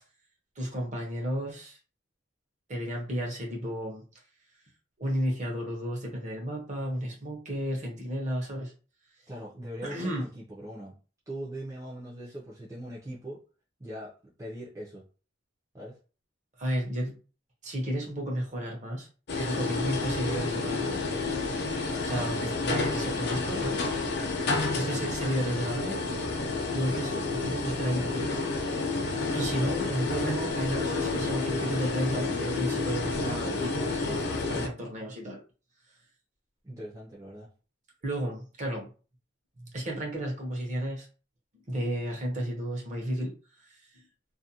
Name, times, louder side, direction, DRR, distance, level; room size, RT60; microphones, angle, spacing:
voice 1, 0.6-1.8 2.7-4.0 5.0-8.7 9.8-10.3 16.6-17.1 17.6-19.1 19.4-21.0 22.0-23.8 24.7-26.0 26.7-28.4 29.3-35.4 38.0-38.9 39.6-41.1 41.7-43.3, equal, 40° right, 0 dB, 0.8 m, -32 dB
voice 2, 9.3-11.0 11.3-13.4 13.8-15.0 15.7-16.0 36.6-37.5, right 1 dB, 15° right, -6 dB, 0.5 m, -41 dB
sound 1, 19.3-34.7, left 3 dB, 60° left, 0.6 m, -30 dB
2.5 x 2.2 x 2.7 m, 0.36 s
head